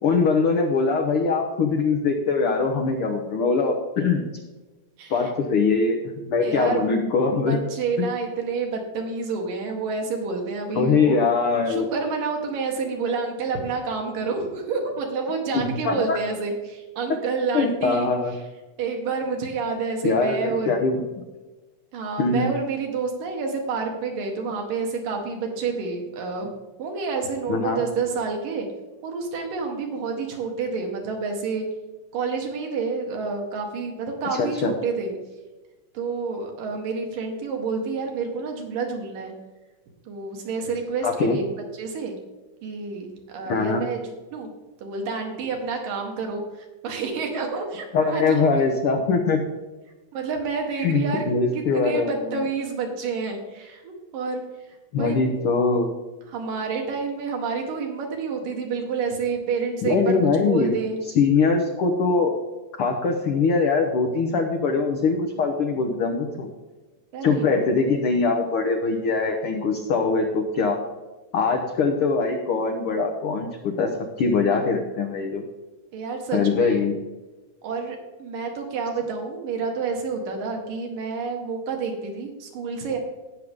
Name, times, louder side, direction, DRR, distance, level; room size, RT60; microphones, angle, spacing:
voice 1, 0.0-4.2 5.1-7.6 8.0-8.1 10.7-11.9 15.5-16.2 17.5-18.3 20.0-21.0 22.2-22.5 27.5-27.8 34.2-34.7 41.0-41.4 43.5-43.8 47.9-49.4 50.8-52.4 54.9-55.9 59.8-60.8 61.1-62.3 62.8-66.5 67.2-70.8 71.3-73.9 74.2-75.4 76.3-77.0, left 4 dB, 70° left, 2 dB, 1.3 m, -22 dB
voice 2, 5.0-5.3 6.4-6.9 7.3-11.3 11.7-18.1 18.8-20.7 21.9-26.5 26.8-28.7 29.0-31.7 32.1-35.1 35.9-39.3 40.1-41.4 41.8-42.1 42.6-44.5 44.8-48.6 50.1-51.3 51.5-54.4 54.9-55.2 56.3-61.0 67.1-67.5 75.9-76.8 77.6-83.0, right 4 dB, 80° right, 2 dB, 3.4 m, -29 dB
17.5 x 6.6 x 3.7 m, 1.2 s
omnidirectional pair, 3.8 m